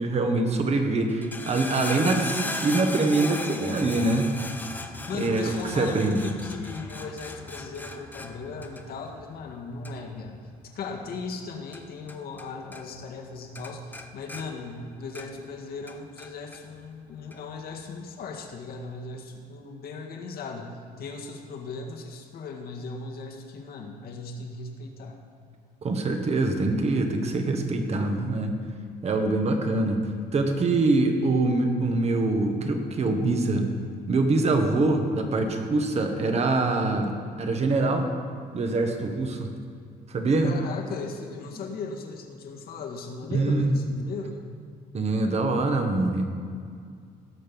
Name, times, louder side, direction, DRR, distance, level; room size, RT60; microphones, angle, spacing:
voice 1, 0.0-4.3 5.1-6.3 25.8-28.5 29.0-30.0 30.3-33.7 34.1-37.1 37.4-38.1 38.5-39.5 40.1-40.6 43.3-43.8 44.9-46.3, right 2 dB, 40° right, 4 dB, 1.6 m, -24 dB
sound 1, 1.1-12.5 12.7-13.3 13.6-15.5 15.9-16.6 17.3-17.4, left 2 dB, 10° left, 0.8 m, -37 dB
voice 2, 4.8-10.4 10.7-25.2 40.4-44.5, left 4 dB, 65° left, 1 dB, 1.8 m, -37 dB
17.5 x 6.6 x 5.4 m, 2.1 s
cardioid pair, 110°, 17 cm